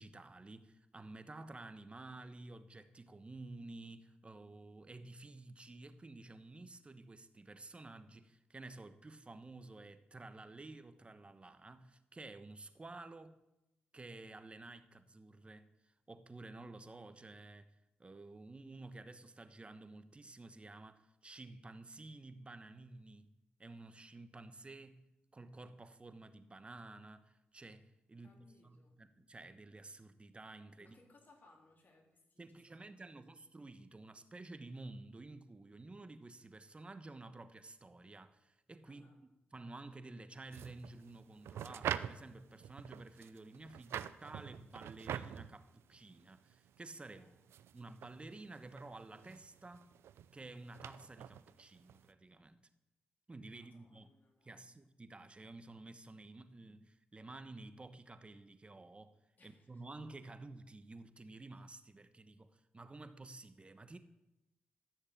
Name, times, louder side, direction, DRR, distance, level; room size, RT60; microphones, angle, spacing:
voice 1, 0.0-13.4 13.9-25.0 25.3-31.0 32.4-47.2 47.7-49.9 50.3-52.6 53.3-54.1 54.4-59.2 59.4-64.0, right 2 dB, 30° right, 1.2 m, -52 dB
voice 2, 28.2-29.0 30.8-33.4 38.9-39.2 47.1-47.3 53.5-54.7 59.4-60.1, left 2 dB, 45° left, 3.7 m, -67 dB
sound 1, 40.5-52.1, right 10 dB, 85° right, 0.5 m, -46 dB
13.0 x 6.5 x 8.6 m
cardioid pair, 65°, 4 cm